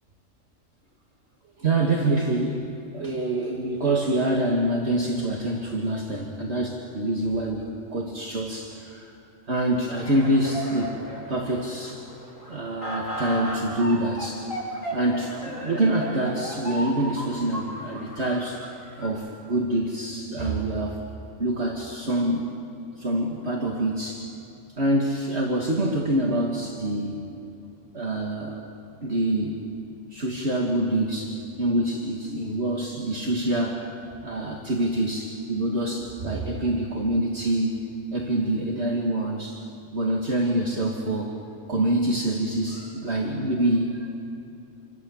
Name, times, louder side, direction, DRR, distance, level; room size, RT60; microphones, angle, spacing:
voice 1, 1.6-2.6 2.9-9.1 9.5-11.0 11.3-12.0 12.5-14.5 14.9-18.6 19.0-21.0 21.4-22.5 23.0-24.3 24.8-27.2 27.9-28.6 29.0-29.7 30.1-33.9 34.2-39.6 39.9-41.3 41.7-44.1, right 1 dB, 50° right, -1 dB, 2.4 m, -26 dB
sound 1, 9.9-19.1, equal, 70° left, 8.0 m, -35 dB
27.5 x 25.0 x 7.3 m, 2.8 s
omnidirectional pair, 1.4 m